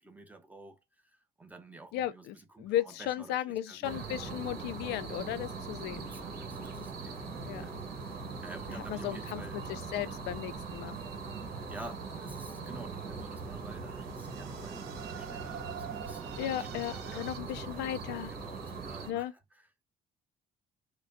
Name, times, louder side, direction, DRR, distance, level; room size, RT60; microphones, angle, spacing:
voice 1, 0.0-4.1 6.1-9.7 11.7-17.9 18.3-19.8, right 2 dB, 10° right, 0.9 m, -50 dB
voice 2, 1.9-6.1 7.5-7.6 8.9-9.4 9.7-11.0 16.4-18.3 19.1-19.3, left 12 dB, 80° left, 0.4 m, -35 dB
sound 1, 3.8-19.1, right 4 dB, 65° right, 1.4 m, -41 dB
sound 2, 11.5-17.4, right 10 dB, 85° right, 0.7 m, -48 dB
4.9 x 2.2 x 2.6 m
cardioid pair, 110°, 17 cm